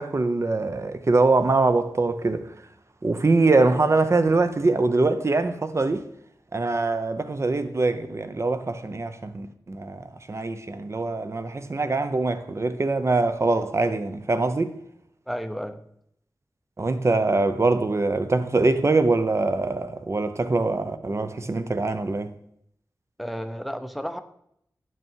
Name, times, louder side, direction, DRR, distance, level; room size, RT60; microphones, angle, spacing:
voice 1, 0.0-2.5 3.0-6.0 6.5-14.7 16.8-22.3, right 3 dB, 40° right, 0.8 m, -23 dB
voice 2, 15.3-15.8 23.2-24.2, equal, ahead, 0.7 m, -32 dB
10.5 x 6.1 x 4.6 m
wide cardioid pair, 85°, 7 cm